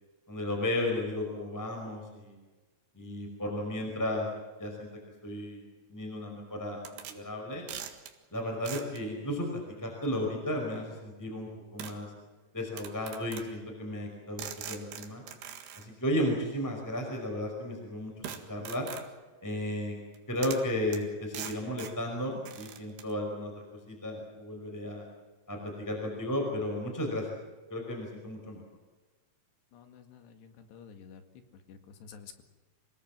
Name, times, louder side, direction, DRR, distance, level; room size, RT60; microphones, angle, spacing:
voice 1, 0.3-2.4 2.9-4.3 4.6-4.9 5.2-5.6 5.9-7.6 8.3-12.1 12.5-15.2 15.7-18.9 19.4-20.0 20.3-25.0 25.5-27.4 27.7-28.6, left 1 dB, 5° left, 1 dB, 5.0 m, -34 dB
sound 1, 6.8-7.2 7.7-8.1 8.7-9.0 10.4-10.5 11.8-12.0 12.8-13.5 14.4-15.9 18.2-19.1 20.1-20.2 20.4-20.7 20.9-21.0 21.3-22.0 22.5-23.1, right 9 dB, 80° right, 3.8 m, -42 dB
voice 2, 29.7-31.2 31.7-32.5, left 6 dB, 85° left, 7 dB, 4.2 m, -51 dB
27.0 x 19.0 x 7.4 m, 1.2 s
omnidirectional pair, 4.7 m